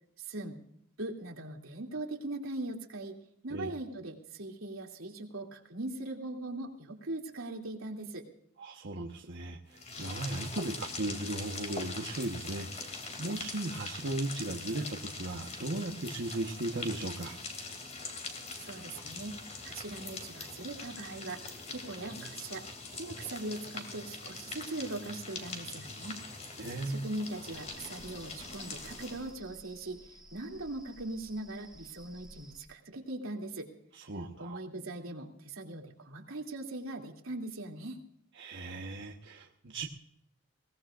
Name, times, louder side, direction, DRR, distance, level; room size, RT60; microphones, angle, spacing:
voice 1, 0.2-0.6 1.0-3.2 3.4-8.3 18.6-19.4 19.6-22.7 22.9-26.2 26.8-33.7 34.4-38.0, right 2 dB, 85° right, 1 dB, 2.7 m, -40 dB
voice 2, 8.6-17.4 26.6-27.1 33.9-34.6 38.3-39.9, right 2 dB, 60° right, 0 dB, 1.2 m, -37 dB
sound 1, 9.7-29.4, left 3 dB, 35° left, 2.7 m, -43 dB
sound 2, 27.5-32.7, right 1 dB, 5° right, 1.5 m, -55 dB
22.5 x 18.0 x 2.5 m, 0.72 s
head